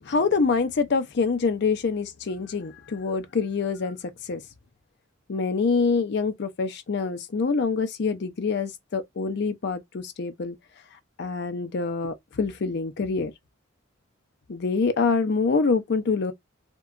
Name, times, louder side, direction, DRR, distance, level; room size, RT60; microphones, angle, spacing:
voice 1, 0.0-4.0 4.2-4.4 5.3-10.6 11.2-13.3 14.5-16.3, left 4 dB, 60° left, 0.5 m, -25 dB
2.7 x 2.2 x 2.4 m
head